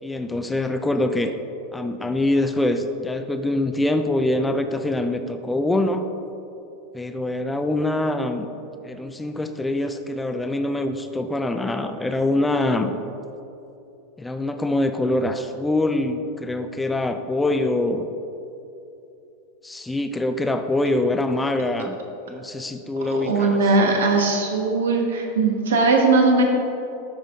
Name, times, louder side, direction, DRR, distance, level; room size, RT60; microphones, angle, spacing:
voice 1, 0.0-1.3 1.7-6.1 6.9-8.5 8.8-12.9 14.2-18.1 19.6-22.0 22.3-23.6, left 2 dB, 10° left, 7 dB, 0.4 m, -24 dB
voice 2, 23.1-26.4, right 3 dB, 65° right, 1 dB, 1.2 m, -19 dB
12.0 x 5.1 x 3.6 m, 2.9 s
figure-of-eight pair, 85°, 0 cm